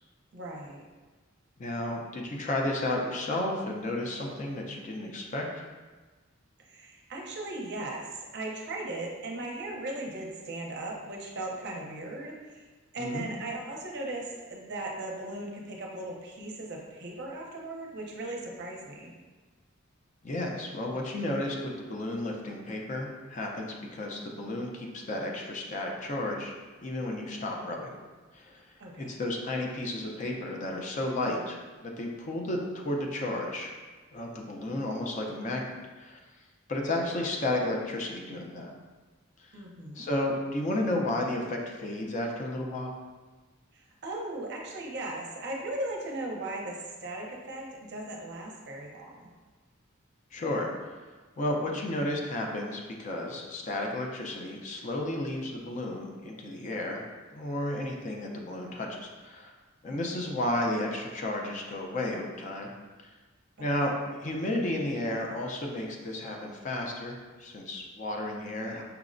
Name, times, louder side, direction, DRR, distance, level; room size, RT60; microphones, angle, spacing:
voice 1, 0.3-0.8 6.7-12.6 12.9-19.1 28.8-29.2 39.5-40.0 44.0-49.3 59.9-60.2 63.6-63.7, right 2 dB, 55° right, -1 dB, 0.5 m, -38 dB
voice 2, 1.6-5.6 13.0-13.3 20.2-26.5 26.8-27.9 28.3-28.6 29.0-33.7 34.1-35.7 36.0-36.2 36.7-38.7 39.4-39.5 39.9-42.9 50.3-50.7 51.4-57.0 57.3-59.5 59.8-62.7 63.0-63.1 63.6-68.8, left 1 dB, 35° left, 1 dB, 0.4 m, -32 dB
5.6 x 2.0 x 2.5 m, 1.3 s
head